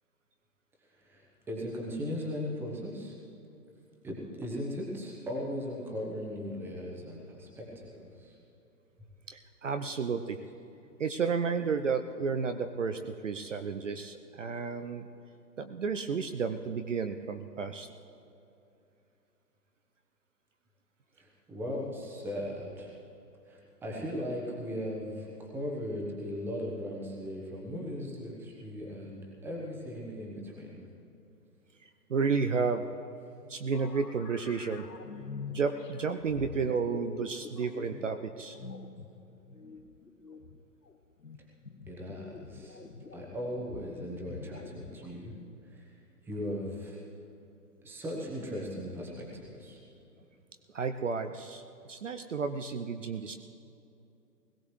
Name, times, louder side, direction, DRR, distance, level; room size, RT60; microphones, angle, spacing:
voice 1, 1.0-3.1 4.0-8.3 21.2-22.9 23.5-30.9 41.9-42.8 43.1-45.3 45.7-45.9 46.2-47.0 47.8-49.8, equal, 5° right, -2 dB, 1.1 m, -38 dB
voice 2, 9.3-10.4 11.0-15.1 15.6-17.9 32.1-32.9 33.5-34.9 35.5-38.6 50.7-53.4, right 5 dB, 50° right, 7 dB, 0.7 m, -32 dB
sound 1, 33.7-45.6, left 5 dB, 80° left, 1.1 m, -46 dB
21.0 x 16.5 x 3.2 m, 2.7 s
figure-of-eight pair, 130°, 48 cm